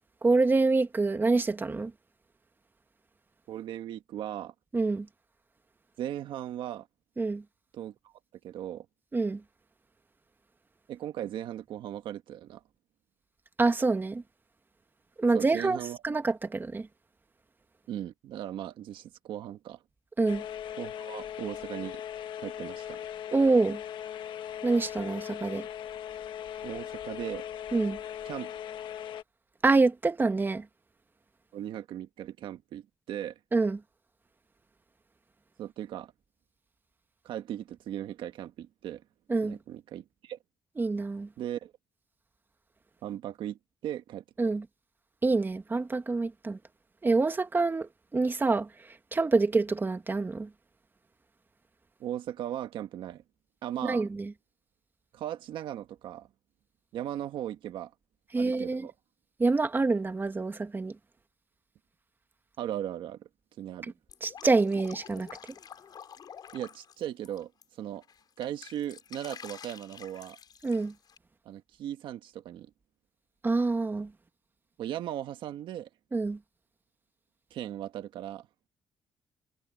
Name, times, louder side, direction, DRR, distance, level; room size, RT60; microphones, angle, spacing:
voice 1, 0.2-1.9 4.7-5.1 7.2-7.4 9.1-9.4 13.6-14.2 15.2-16.9 20.2-20.4 23.3-23.8 24.6-25.7 27.7-28.0 29.6-30.6 33.5-33.8 39.3-39.6 40.8-41.3 44.4-44.6 45.2-46.6 47.0-48.7 49.1-50.5 53.8-54.3 58.3-58.9 59.4-61.0 64.2-65.3 70.6-70.9 73.4-74.1 76.1-76.4, right 3 dB, 25° right, 1.9 m, -26 dB
voice 2, 3.5-4.5 6.0-6.9 7.7-8.1 8.4-8.8 10.9-12.6 15.3-16.0 17.9-19.8 20.7-22.0 22.4-23.0 26.6-27.4 28.2-28.5 31.5-33.4 35.6-36.1 37.2-39.0 39.4-40.4 41.4-41.7 43.0-44.2 52.0-53.2 53.6-54.1 55.1-56.3 56.9-57.9 58.3-58.9 62.6-63.3 63.6-63.9 66.5-68.0 68.4-70.4 71.4-72.7 74.8-75.9 77.5-78.5, right 11 dB, 80° right, 1.4 m, -38 dB
sound 1, 20.3-29.2, left 10 dB, 75° left, 1.3 m, -39 dB
Drip, 64.1-67.6 68.0-71.2, left 8 dB, 55° left, 4.6 m, -48 dB
cardioid pair, 90°, 8 cm